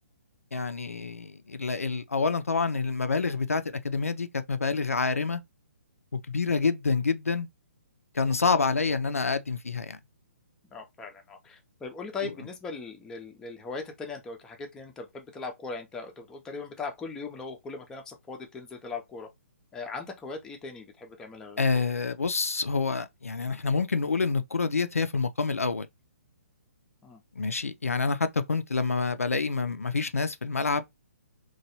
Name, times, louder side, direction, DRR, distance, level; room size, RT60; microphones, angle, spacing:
voice 1, 0.5-5.4 6.1-7.5 8.1-10.0 21.6-25.9 27.4-30.8, left 4 dB, 75° left, 0.4 m, -27 dB
voice 2, 10.7-19.3 19.7-21.8 27.0-27.2, left 4 dB, 10° left, 0.5 m, -39 dB
3.0 x 2.2 x 2.8 m
figure-of-eight pair, 130°, 8 cm